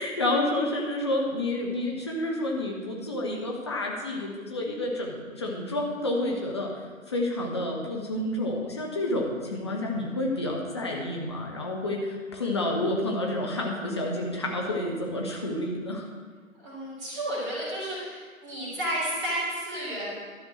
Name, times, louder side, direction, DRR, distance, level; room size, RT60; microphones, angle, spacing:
voice 1, 0.0-16.1, left 1 dB, 20° left, -1 dB, 0.7 m, -29 dB
voice 2, 16.5-20.2, right 1 dB, 15° right, -8 dB, 3.5 m, -32 dB
12.0 x 5.1 x 6.3 m, 1.5 s
figure-of-eight pair, 145°, 41 cm